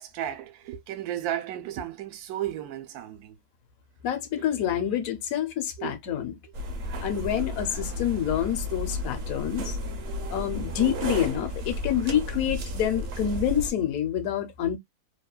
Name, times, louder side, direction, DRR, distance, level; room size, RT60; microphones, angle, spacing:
voice 1, 0.0-3.4 5.8-5.9 10.8-10.9, right 11 dB, 85° right, 1.1 m, -34 dB
voice 2, 4.0-6.4 7.0-9.8 10.3-14.8, left 10 dB, 70° left, 1.0 m, -27 dB
sound 1, 6.5-13.7, equal, 60° right, 0.7 m, -33 dB
2.9 x 2.1 x 2.2 m
omnidirectional pair, 1.6 m